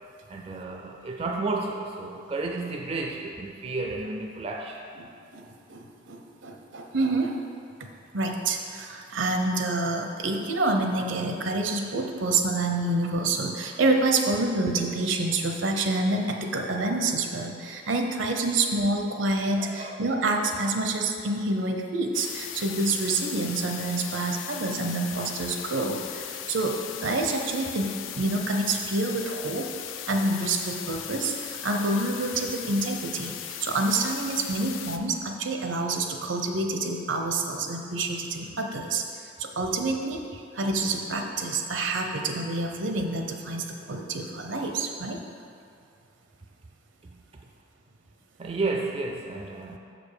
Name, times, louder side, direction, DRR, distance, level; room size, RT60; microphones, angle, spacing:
voice 1, 0.3-4.8 19.6-20.1 25.7-25.9 44.5-44.7 47.1-47.2 48.4-49.8, right 3 dB, 30° right, 2 dB, 0.4 m, -32 dB
voice 2, 5.0-7.4 8.1-26.7 27.0-29.7 30.1-39.0 39.4-45.2, right 2 dB, 75° right, 3 dB, 0.7 m, -27 dB
sound 1, 22.1-35.0, left 10 dB, 80° left, 0.4 m, -38 dB
6.6 x 5.2 x 4.9 m, 2.4 s
head